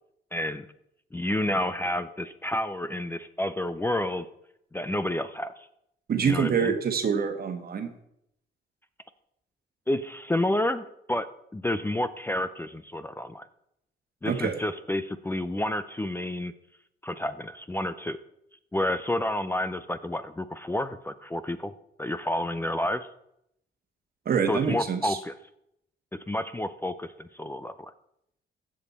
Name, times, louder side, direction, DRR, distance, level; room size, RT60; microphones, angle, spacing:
voice 1, 0.3-0.7 1.1-4.3 4.7-5.7 6.2-6.7 9.9-13.5 14.2-16.5 17.0-18.2 18.7-21.7 22.0-23.1 24.5-25.3 26.3-27.9, left 1 dB, 10° left, 12 dB, 0.5 m, -30 dB
voice 2, 6.1-7.9 14.2-14.5 24.2-25.2, right 6 dB, 50° right, 6 dB, 1.3 m, -26 dB
15.0 x 5.4 x 4.2 m, 0.78 s
cardioid pair, 90°, 20 cm